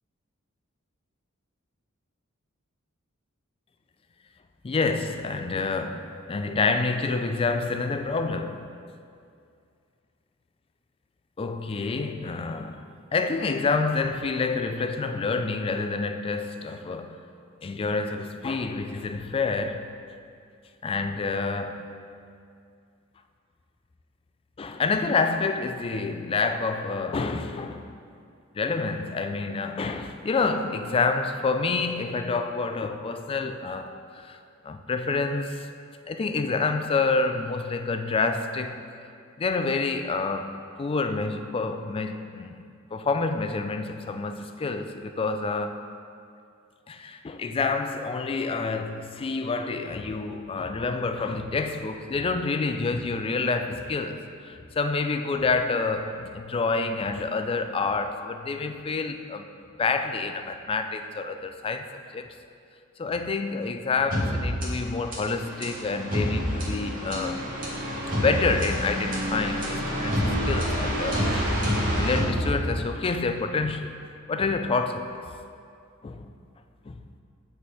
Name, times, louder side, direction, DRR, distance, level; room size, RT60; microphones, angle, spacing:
voice 1, 4.6-8.7 11.4-17.2 17.6-19.9 20.8-22.0 24.6-27.9 28.5-34.4 34.6-35.7 36.1-38.8 39.4-45.8 46.9-59.5 59.8-61.9 62.1-62.3 63.0-67.4 67.9-71.5 71.9-73.9 74.3-75.2 76.0-76.3 76.9-77.0, left 4 dB, 25° left, 0.3 m, -28 dB
sound 1, 64.1-73.0, equal, 45° right, 1.6 m, -28 dB
7.9 x 4.2 x 4.8 m
head